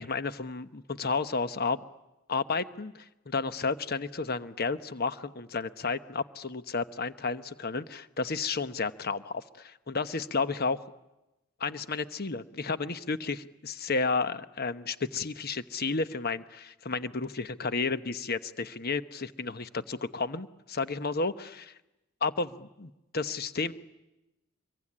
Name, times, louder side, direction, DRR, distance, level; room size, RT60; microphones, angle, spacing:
voice 1, 0.0-1.8 2.3-10.9 11.6-21.7 22.2-23.7, left 4 dB, 45° left, 12 dB, 1.0 m, -32 dB
25.5 x 23.5 x 9.9 m, 0.96 s
head